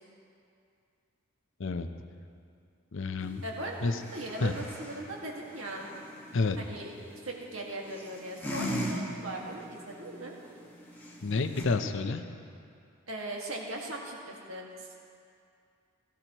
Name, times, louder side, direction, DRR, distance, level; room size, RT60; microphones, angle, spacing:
voice 1, 2.9-3.4 3.8-4.0 4.4-4.5 6.3-6.6 11.2-12.2, left 3 dB, 65° left, 8 dB, 0.7 m, -29 dB
sound 1, 3.2-11.6, equal, 10° left, 1.6 m, -41 dB
voice 2, 3.4-3.8 4.1-5.9 6.6-6.9 7.3-10.4 13.1-15.0, right 1 dB, 75° right, -1 dB, 1.9 m, -39 dB
16.5 x 14.5 x 3.0 m, 2.4 s
head